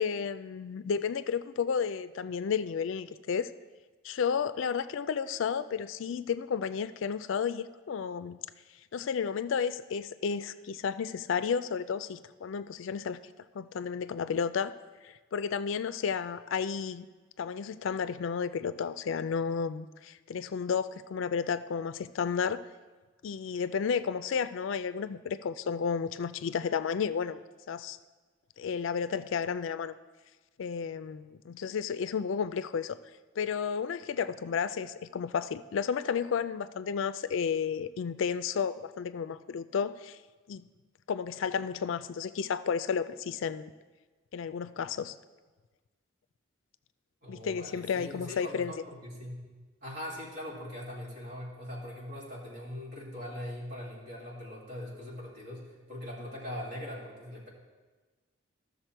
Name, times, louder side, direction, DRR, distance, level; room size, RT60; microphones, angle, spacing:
voice 1, 0.0-3.5 4.0-8.4 8.9-13.2 13.5-14.7 15.0-17.1 17.4-22.6 23.2-27.4 27.7-28.0 28.6-29.9 30.6-33.0 33.4-40.2 40.5-40.6 41.1-43.7 44.3-45.1 47.3-48.7, left 6 dB, 70° left, 14 dB, 0.4 m, -32 dB
voice 2, 47.2-49.5 49.8-57.5, left 1 dB, 50° right, -4 dB, 2.5 m, -41 dB
13.0 x 6.5 x 4.5 m, 1.3 s
head